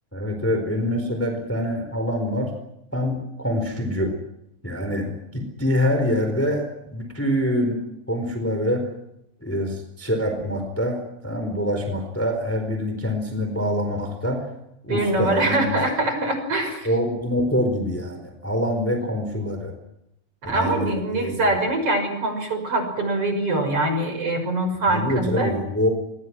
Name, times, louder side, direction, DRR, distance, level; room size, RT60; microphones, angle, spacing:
voice 1, 0.1-2.5 2.9-4.1 4.6-8.9 9.4-14.5 14.8-15.7 16.8-19.7 20.5-21.4 24.9-25.9, equal, 5° left, 5 dB, 3.9 m, -25 dB
voice 2, 14.9-16.9 20.5-25.6, right 2 dB, 40° right, 6 dB, 7.0 m, -23 dB
29.0 x 23.0 x 6.2 m, 0.81 s
omnidirectional pair, 4.1 m